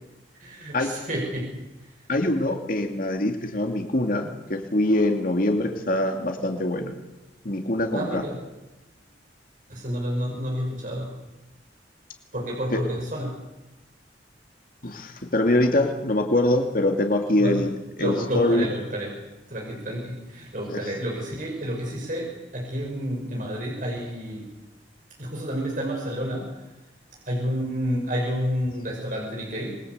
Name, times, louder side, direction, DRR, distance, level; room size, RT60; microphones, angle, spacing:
voice 1, 0.4-1.9 7.9-8.4 9.7-11.2 12.3-13.4 17.4-17.7 18.0-19.2 19.5-24.5 25.2-26.7 27.3-29.8, equal, 45° right, -1 dB, 5.8 m, -30 dB
voice 2, 2.1-6.9 7.4-8.2 12.7-12.8 14.8-17.7 18.0-18.7 20.7-20.8, left 1 dB, 50° left, 4 dB, 2.5 m, -23 dB
27.0 x 22.0 x 8.1 m, 1.0 s
head